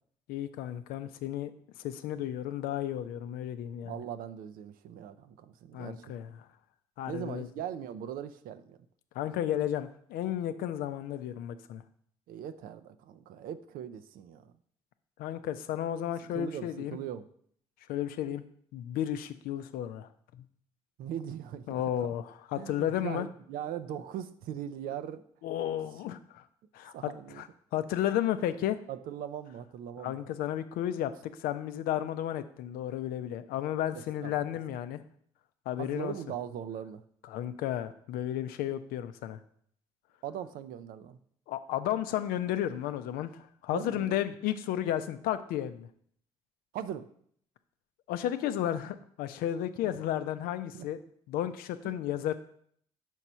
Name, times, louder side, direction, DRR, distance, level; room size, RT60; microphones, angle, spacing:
voice 1, 0.3-1.5 1.8-3.9 5.7-6.3 7.0-7.5 9.2-11.8 15.2-17.0 17.9-18.4 18.7-20.4 21.7-23.3 25.4-26.4 26.7-27.5 27.7-28.8 30.0-31.1 31.4-35.0 35.7-36.1 37.2-39.4 41.5-43.3 43.6-45.9 48.1-51.0 51.3-52.3, left 11 dB, 70° left, 11 dB, 0.5 m, -33 dB
voice 2, 3.8-6.1 7.1-8.8 12.3-14.5 16.3-17.2 21.0-22.1 22.6-25.2 26.9-27.4 28.9-30.3 33.9-34.6 35.8-37.0 40.2-41.2 43.7-44.2 46.7-47.1 50.7-50.9 51.8-52.0, right 10 dB, 65° right, 12 dB, 0.5 m, -40 dB
4.8 x 4.5 x 5.5 m, 0.64 s
hypercardioid pair, 40°, 16 cm